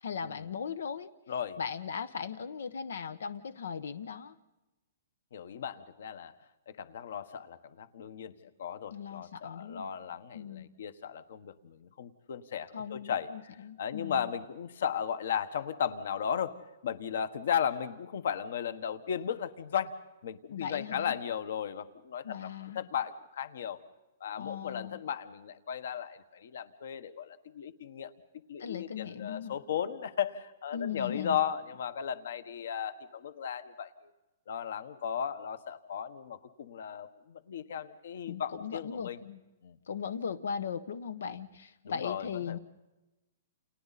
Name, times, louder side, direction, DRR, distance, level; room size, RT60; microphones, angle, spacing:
voice 1, 0.0-1.1 1.6-4.3 8.9-9.9 10.3-10.7 12.7-14.3 20.5-21.2 22.2-22.9 24.4-25.0 28.6-29.6 30.7-31.4 38.3-39.4 39.9-42.6, left 7 dB, 85° left, 13 dB, 1.2 m, -38 dB
voice 2, 1.3-1.6 5.3-6.3 6.7-8.3 8.6-13.3 13.8-19.9 20.2-22.5 22.7-23.8 24.2-28.1 28.5-33.9 34.5-39.2 39.6-39.7 41.8-42.6, left 8 dB, 55° left, 13 dB, 1.3 m, -35 dB
29.5 x 29.5 x 4.2 m, 1.0 s
hypercardioid pair, 180°, 0 cm